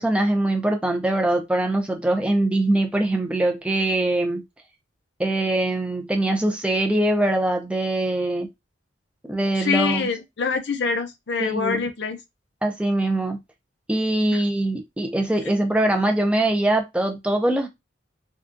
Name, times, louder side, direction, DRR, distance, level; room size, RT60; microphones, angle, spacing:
voice 1, 0.0-4.4 5.2-8.5 9.3-10.1 11.4-11.8 12.6-13.4 13.9-17.7, right 1 dB, 5° right, 0.4 m, -22 dB
voice 2, 9.6-12.2 14.3-14.4, left 5 dB, 60° left, 0.5 m, -25 dB
3.6 x 2.3 x 2.5 m
head